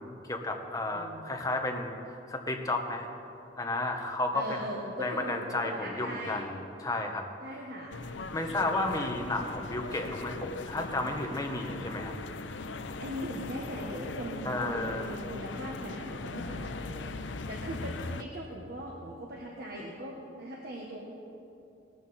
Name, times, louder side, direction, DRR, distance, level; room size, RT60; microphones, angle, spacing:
voice 1, 0.0-2.0 2.3-3.1 3.6-4.7 5.0-7.3 8.3-12.1 14.4-15.1, left 2 dB, 20° left, 2 dB, 1.2 m, -32 dB
voice 2, 0.9-1.4 4.3-6.5 7.4-8.0 13.0-21.0, equal, 55° right, -2 dB, 1.4 m, -40 dB
sound 1, 7.9-18.2, left 3 dB, 80° left, 0.6 m, -39 dB
19.0 x 13.0 x 4.3 m, 2.7 s
head